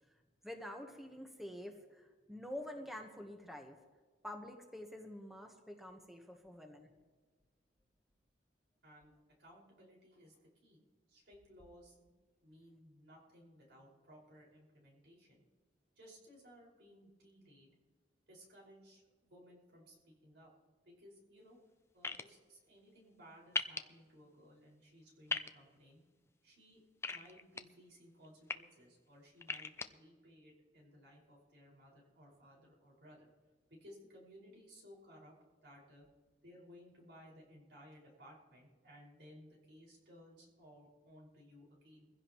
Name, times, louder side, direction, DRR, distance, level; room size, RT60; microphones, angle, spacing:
voice 1, 0.4-3.8 4.2-6.9, left 1 dB, ahead, 3 dB, 1.2 m, -47 dB
voice 2, 8.8-10.8 11.1-12.1 12.4-15.4 16.0-17.7 18.3-20.5 20.8-21.6 21.9-26.0 26.4-33.3 33.7-35.3 35.6-36.1 36.4-42.1, equal, 75° right, -3 dB, 5.4 m, -60 dB
sound 1, 22.0-22.2 23.5-23.8 25.3-25.5 27.0-27.6 28.2-28.5 29.4-29.9, left 3 dB, 15° left, 0.6 m, -37 dB
23.0 x 16.0 x 3.1 m, 1.4 s
head